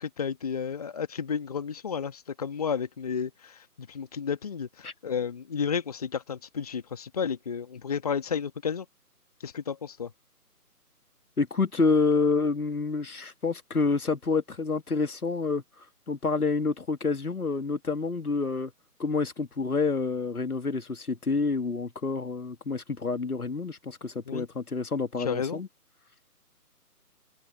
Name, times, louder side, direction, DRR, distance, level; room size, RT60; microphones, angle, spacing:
voice 1, 0.0-8.9 9.4-10.1 24.3-24.5 25.2-25.6, left 6 dB, 25° left, 1.4 m, -32 dB
voice 2, 11.4-15.6 16.1-18.7 19.0-25.7, left 4 dB, 70° left, 2.2 m, -28 dB
figure-of-eight pair, 155°, 47 cm